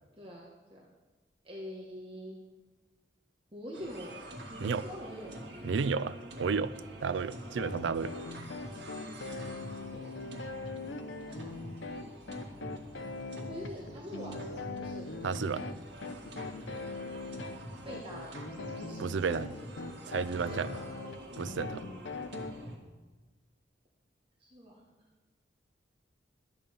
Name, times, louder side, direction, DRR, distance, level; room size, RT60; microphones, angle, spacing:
voice 1, 0.2-0.9 1.4-2.4 3.5-4.2 4.5-5.3 5.8-5.9 9.5-10.2 11.3-11.6 13.4-15.1 17.8-18.4 18.8-19.0 20.3-20.9 24.4-24.9, equal, 30° right, -3 dB, 1.5 m, -45 dB
sound 1, 3.7-22.8, right 1 dB, 65° right, 1.9 m, -46 dB
voice 2, 5.6-6.7 7.0-8.2 15.2-15.7 19.0-19.5 20.1-20.7 21.4-21.8, right 5 dB, 85° right, 17 dB, 0.4 m, -32 dB
sound 2, 7.6-22.5, left 3 dB, 85° left, 0.8 m, -41 dB
12.5 x 8.8 x 5.3 m, 1.2 s
head